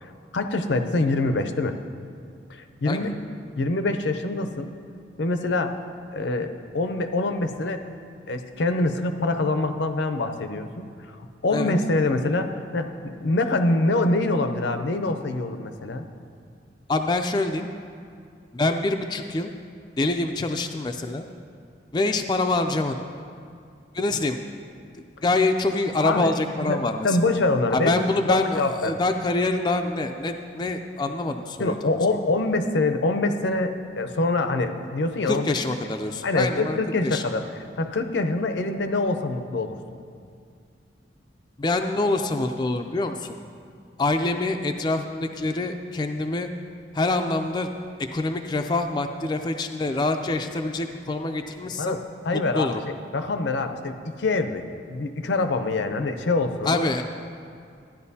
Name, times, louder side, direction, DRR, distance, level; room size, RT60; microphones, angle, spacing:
voice 1, 0.3-1.8 2.5-3.2 3.6-4.7 5.2-5.7 6.1-7.9 8.3-10.9 11.4-16.0 26.0-28.0 28.3-29.0 31.6-35.5 36.2-39.8 51.8-52.7 53.1-54.6 54.9-56.9, left 2 dB, 80° left, 8 dB, 0.6 m, -25 dB
voice 2, 16.9-17.7 18.5-19.5 20.0-21.3 21.9-23.0 23.9-24.4 25.2-27.2 27.7-31.8 35.2-36.8 37.0-37.2 41.6-43.3 44.0-46.5 46.9-47.7 48.1-52.0 52.5-52.8 56.7-57.0, left 2 dB, 25° left, 5 dB, 0.3 m, -25 dB
14.0 x 10.0 x 2.8 m, 2.3 s
head